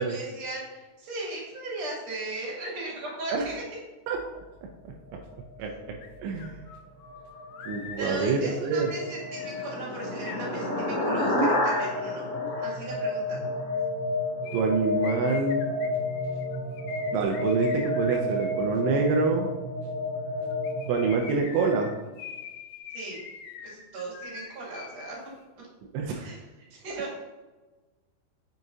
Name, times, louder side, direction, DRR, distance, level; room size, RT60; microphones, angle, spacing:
voice 1, 0.0-3.6 8.0-12.2 12.6-13.5 22.9-23.2 23.6-25.3 26.2-26.4 26.7-27.2, right 2 dB, 45° right, -6 dB, 2.9 m, -37 dB
sound 1, 5.1-21.2, left 2 dB, 65° right, 1.5 m, -32 dB
sound 2, 6.0-6.1 6.4-11.2 14.4-18.7 20.5-25.1 25.4-25.5, left 6 dB, 80° left, 2.7 m, -44 dB
voice 2, 6.2-6.6 7.7-8.9 14.5-15.7 17.1-19.5 20.9-21.9 25.9-26.4, right 4 dB, 85° right, 1 dB, 2.9 m, -26 dB
sound 3, 8.9-13.7, left 1 dB, 50° left, 0.9 m, -29 dB
7.6 x 6.4 x 2.7 m, 1.2 s
omnidirectional pair, 5.3 m